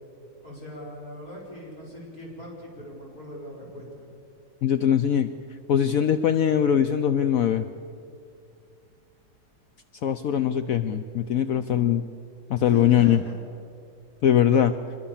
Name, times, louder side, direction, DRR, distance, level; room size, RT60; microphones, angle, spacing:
voice 1, 0.4-4.0 12.6-13.4, left 1 dB, 40° left, -3 dB, 5.9 m, -40 dB
voice 2, 4.6-5.3 5.7-7.7 10.0-12.1 12.5-13.2 14.2-14.7, left 9 dB, 65° left, 10 dB, 0.8 m, -21 dB
25.0 x 21.5 x 7.3 m, 2.4 s
omnidirectional pair, 2.3 m